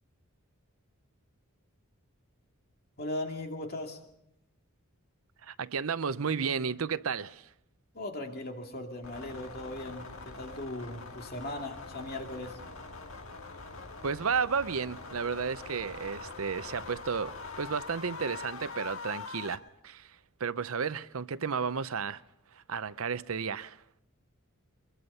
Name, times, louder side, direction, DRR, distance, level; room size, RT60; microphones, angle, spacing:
voice 1, 3.0-4.0 7.9-12.6, left 1 dB, 45° left, 2.5 m, -38 dB
voice 2, 5.4-7.5 14.0-22.2 22.5-23.8, right 6 dB, 70° right, 0.7 m, -33 dB
sound 1, 9.0-19.6, left 4 dB, 70° left, 1.7 m, -44 dB
23.5 x 22.5 x 5.5 m
head